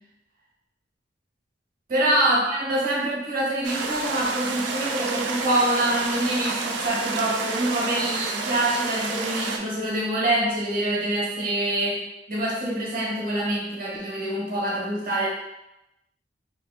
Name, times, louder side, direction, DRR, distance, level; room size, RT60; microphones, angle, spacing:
voice 1, 1.9-12.0 12.3-15.3, right 1 dB, 50° right, -5 dB, 0.9 m, -25 dB
sound 1, 3.6-9.6, right 4 dB, 75° right, 0.4 m, -30 dB
3.2 x 2.7 x 2.2 m, 0.88 s
head